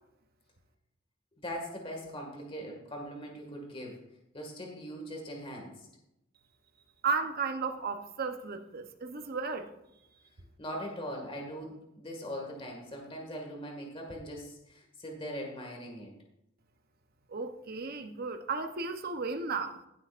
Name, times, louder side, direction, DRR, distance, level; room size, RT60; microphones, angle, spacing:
voice 1, 1.4-4.0 4.3-5.9 10.6-16.1, equal, 25° left, 1.9 m, -41 dB
voice 2, 7.0-9.7 17.3-19.8, right 4 dB, 50° right, 0.8 m, -34 dB
16.5 x 7.8 x 2.5 m
head